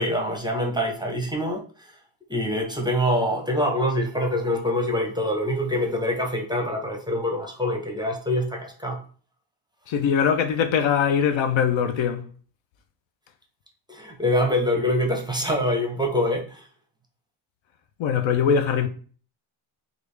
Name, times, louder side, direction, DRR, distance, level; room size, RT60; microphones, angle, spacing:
voice 1, 0.0-1.6 2.3-9.0 13.9-16.6, left 1 dB, 10° right, 0.6 m, -25 dB
voice 2, 9.9-12.3 18.0-18.9, left 7 dB, 65° left, 0.6 m, -22 dB
3.3 x 2.4 x 3.2 m
cardioid pair, 100°, 49 cm